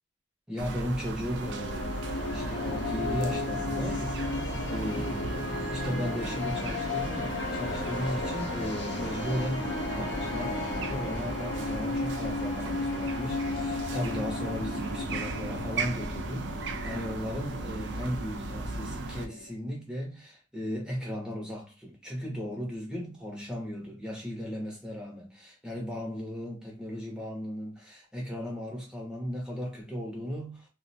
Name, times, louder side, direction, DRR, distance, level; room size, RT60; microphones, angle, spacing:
voice 1, 0.5-1.8 2.3-4.3 4.7-30.7, equal, 5° right, 0.7 m, -36 dB
sound 1, 0.6-19.3, right 3 dB, 65° right, 0.4 m, -36 dB
sound 2, 1.3-19.5, left 3 dB, 60° left, 0.6 m, -35 dB
2.4 x 2.1 x 2.6 m
head